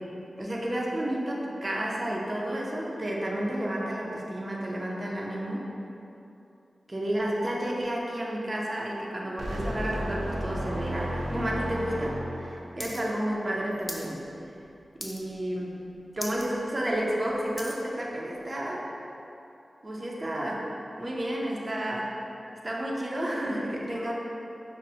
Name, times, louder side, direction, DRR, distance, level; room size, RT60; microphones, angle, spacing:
voice 1, 0.0-5.7 6.9-14.2 15.0-15.9 16.1-18.9 19.8-22.2 22.6-24.1, right 1 dB, 40° right, -3 dB, 0.5 m, -31 dB
sound 1, 9.4-12.6, equal, 90° right, 0.4 m, -33 dB
sound 2, 12.8-13.0 13.3-14.1 14.5-14.7 15.0-15.4 15.8-15.9 16.1-16.5 16.9-17.8 18.5-18.6, left 1 dB, 15° left, 0.4 m, -39 dB
5.3 x 2.0 x 2.7 m, 2.8 s
cardioid pair, 40°, 0 cm